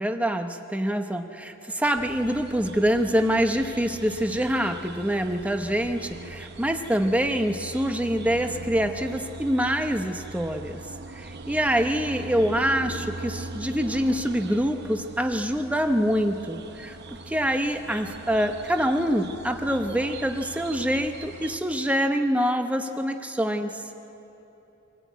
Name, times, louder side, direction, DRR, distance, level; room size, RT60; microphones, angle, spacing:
voice 1, 0.0-10.8 11.1-17.0 17.3-23.8, equal, 5° right, 5 dB, 0.8 m, -25 dB
sound 1, 2.0-21.6, right 2 dB, 55° right, 0.9 m, -41 dB
24.5 x 16.5 x 9.3 m, 3.0 s
head